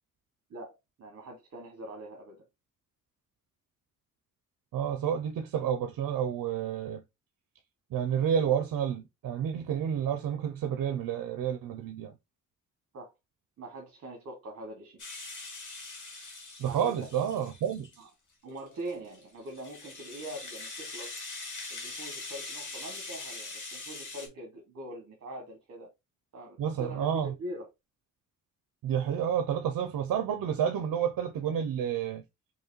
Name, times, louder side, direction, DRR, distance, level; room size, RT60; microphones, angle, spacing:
voice 1, 0.5-2.4 12.9-13.1 13.6-15.0 16.6-16.9 18.0-18.1 18.4-21.2 21.7-25.9 26.3-27.7, right 1 dB, 50° right, 1.1 m, -43 dB
voice 2, 4.7-7.0 7.9-12.1 16.6-17.9 26.6-27.3 28.8-32.2, right 8 dB, 75° right, 0.6 m, -30 dB
Rattle (instrument), 15.0-18.0 18.6-24.3, left 3 dB, 60° left, 1.6 m, -42 dB
4.8 x 2.8 x 3.0 m
wide cardioid pair, 180°, 34 cm